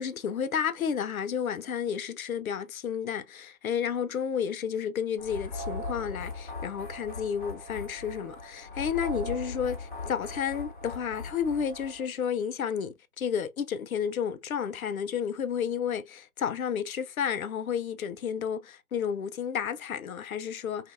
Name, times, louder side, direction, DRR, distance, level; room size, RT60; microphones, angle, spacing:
voice 1, 0.0-20.9, left 7 dB, 70° left, 0.5 m, -31 dB
sound 1, 5.2-12.0, left 2 dB, 35° left, 1.0 m, -39 dB
2.7 x 2.5 x 2.5 m
figure-of-eight pair, 150°, 44 cm